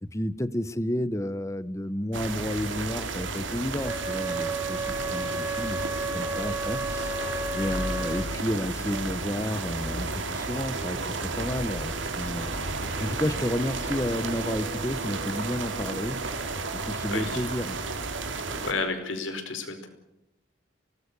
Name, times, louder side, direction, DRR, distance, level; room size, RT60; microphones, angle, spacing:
voice 1, 0.0-7.2 7.5-12.5 13.0-16.4 16.7-17.8, left 1 dB, 15° left, 16 dB, 0.8 m, -31 dB
sound 1, 2.1-18.7, right 3 dB, 80° right, 3.2 m, -32 dB
Wind instrument woodwind instrument, 3.8-8.3, right 2 dB, 10° right, 1.4 m, -32 dB
voice 2, 17.1-17.4 18.6-19.9, left 3 dB, 90° left, 7 dB, 4.8 m, -31 dB
25.0 x 19.5 x 6.9 m, 0.83 s
head